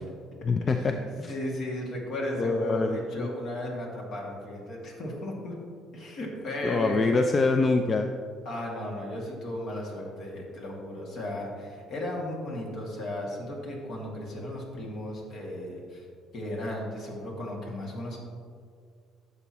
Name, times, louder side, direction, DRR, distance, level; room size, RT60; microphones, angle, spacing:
voice 1, 0.4-0.9 1.2-1.3 2.4-3.3 6.6-8.1, left 3 dB, 30° left, 5 dB, 0.4 m, -25 dB
voice 2, 1.2-5.5 5.9-7.2 8.5-16.1 16.3-18.2, left 1 dB, 60° left, -2 dB, 2.1 m, -35 dB
12.0 x 6.9 x 3.0 m, 2.1 s
cardioid pair, 120°, 0 cm